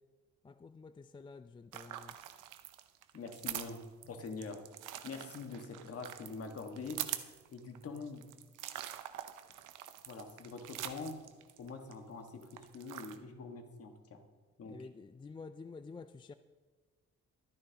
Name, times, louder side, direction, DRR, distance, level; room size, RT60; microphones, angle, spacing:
voice 1, 0.4-2.1 14.6-16.3, left 4 dB, 15° left, 11 dB, 0.4 m, -50 dB
sound 1, 1.7-11.9 12.3-13.2, right 12 dB, 85° right, 0.8 m, -45 dB
voice 2, 3.1-4.6 5.0-7.0 7.5-8.3 10.1-11.2 11.6-14.2 14.6-14.8, left 4 dB, 50° left, 5 dB, 1.7 m, -44 dB
22.5 x 9.8 x 2.9 m, 1.4 s
cardioid pair, 90°, 30 cm